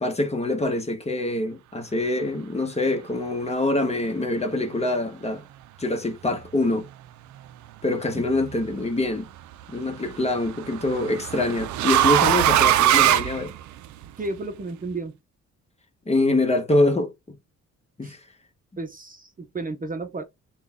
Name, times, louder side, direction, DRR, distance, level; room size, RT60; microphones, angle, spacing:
voice 1, 0.0-5.4 5.8-6.9 7.8-9.3 9.7-13.5 16.1-17.4 18.0-18.2, left 2 dB, 20° left, 1.0 m, -25 dB
sound 1, 8.1-8.6 10.1-14.0, right 12 dB, 70° right, 0.4 m, -21 dB
voice 2, 14.2-15.2 18.0-18.2 18.8-20.2, right 2 dB, 30° right, 0.7 m, -32 dB
3.8 x 2.3 x 3.5 m
cardioid pair, 90°, 30 cm